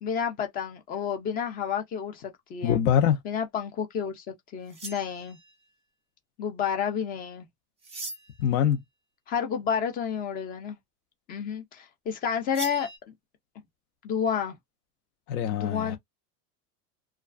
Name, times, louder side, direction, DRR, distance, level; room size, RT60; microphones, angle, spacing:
voice 1, 0.0-2.8 3.2-4.3 4.5-5.4 6.4-7.5 9.3-10.8 11.3-13.1 14.0-14.6 15.5-16.0, left 7 dB, 20° left, 0.3 m, -30 dB
voice 2, 2.6-3.2 8.4-8.8 15.3-16.0, left 9 dB, 65° left, 0.7 m, -23 dB
sound 1, 4.7-5.6 7.8-8.5 12.5-13.0, right 3 dB, 15° right, 0.8 m, -40 dB
2.3 x 2.3 x 2.3 m
supercardioid pair, 135°, 47 cm